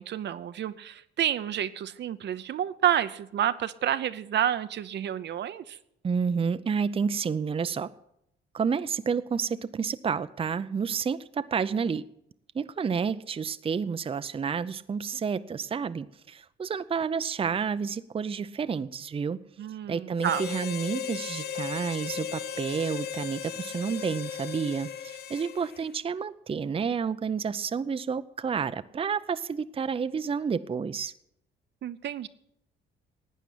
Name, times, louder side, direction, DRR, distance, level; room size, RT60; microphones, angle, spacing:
voice 1, 0.0-5.8 19.6-20.4 31.8-32.3, right 10 dB, 60° right, 12 dB, 0.7 m, -29 dB
voice 2, 6.0-7.9 8.5-12.0 12.5-19.4 19.9-24.9 25.3-31.1, right 6 dB, 30° right, 12 dB, 0.6 m, -30 dB
Harmonica, 20.2-25.8, left 8 dB, 55° left, 0.6 m, -36 dB
12.0 x 9.1 x 8.4 m, 0.78 s
cardioid pair, 90°, 20 cm